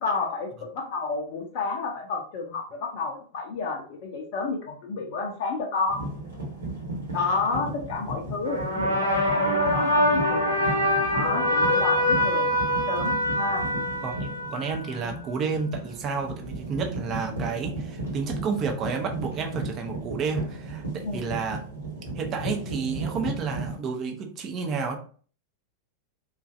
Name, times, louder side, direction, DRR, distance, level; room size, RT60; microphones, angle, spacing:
voice 1, 0.0-6.1 7.1-10.5 11.1-13.7 15.0-15.2 21.0-21.3, left 4 dB, 50° left, 0 dB, 0.5 m, -30 dB
sound 1, 5.9-23.8, right 2 dB, 75° right, 1.2 m, -35 dB
sound 2, 8.4-14.8, left 1 dB, 85° left, 0.9 m, -24 dB
voice 2, 14.5-21.6 22.2-25.0, right 5 dB, 30° right, 3 dB, 0.6 m, -31 dB
3.1 x 2.4 x 2.4 m, 0.43 s
figure-of-eight pair, 90°, 0 cm